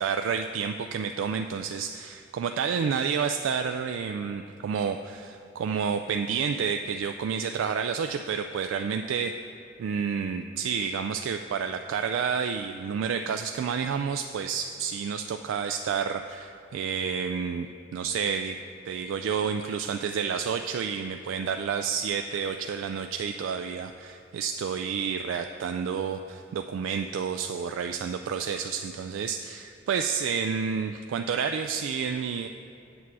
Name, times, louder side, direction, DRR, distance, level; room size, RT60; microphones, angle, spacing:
voice 1, 0.0-9.3 9.8-18.6 18.9-32.5, right 6 dB, 85° right, 6 dB, 0.3 m, -30 dB
8.1 x 7.3 x 4.7 m, 2.7 s
head